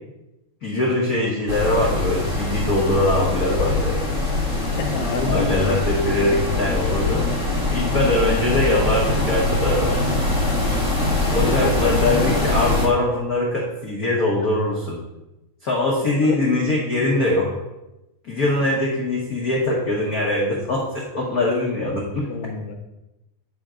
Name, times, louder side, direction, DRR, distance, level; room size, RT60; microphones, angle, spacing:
voice 1, 0.6-4.0 5.2-7.3 7.7-10.0 11.3-15.0 15.6-17.5 18.2-22.3, left 1 dB, 80° left, -3 dB, 0.8 m, -22 dB
sound 1, 1.5-12.9, left 2 dB, 25° right, 0.8 m, -23 dB
voice 2, 4.6-5.9 11.3-11.9 12.2-12.3 16.2-16.4 22.3-22.7, left 4 dB, 65° left, 4 dB, 1.6 m, -28 dB
10.0 x 3.5 x 5.0 m, 0.96 s
omnidirectional pair, 3.4 m